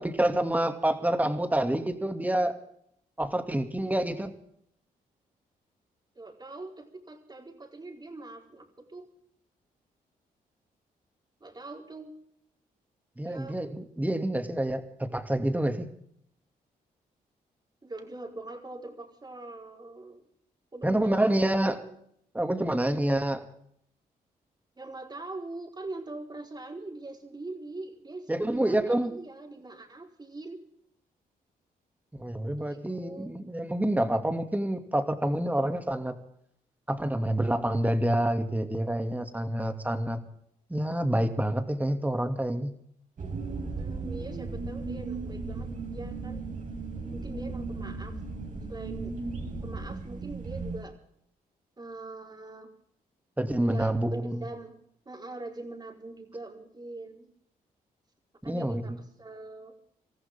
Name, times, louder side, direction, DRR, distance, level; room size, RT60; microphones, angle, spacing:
voice 1, 0.0-2.5 3.2-4.3 13.2-15.9 20.8-21.8 22.3-23.4 28.3-29.1 32.1-36.2 36.9-40.2 40.7-42.7 53.4-54.4 58.4-59.0, right 1 dB, 10° right, 6 dB, 2.6 m, -27 dB
voice 2, 6.1-9.1 11.4-12.1 13.3-13.6 17.8-20.2 20.7-21.8 24.8-30.6 32.5-33.3 43.7-46.4 47.1-48.2 48.7-49.1 49.6-50.9 51.8-52.7 53.6-54.7 55.0-57.3 58.4-59.7, right 2 dB, 25° right, 1 dB, 4.7 m, -42 dB
sound 1, 43.2-50.8, right 3 dB, 55° right, 4.5 m, -36 dB
26.5 x 14.0 x 3.8 m, 0.69 s
cardioid pair, 70°, 16 cm